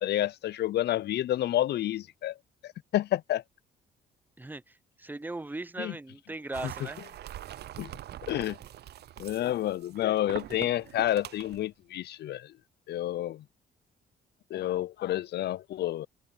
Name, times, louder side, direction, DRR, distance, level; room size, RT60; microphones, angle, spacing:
voice 1, 0.0-2.4 2.6-3.4 5.8-5.9 7.8-7.9 8.3-8.6 9.2-12.5 12.9-13.4 14.5-16.1, left 13 dB, 55° left, 0.4 m, -29 dB
voice 2, 4.4-7.0, right 2 dB, 10° right, 0.6 m, -39 dB
sound 1, 6.5-11.6, right 12 dB, 55° right, 0.4 m, -43 dB
cardioid pair, 90°, 20 cm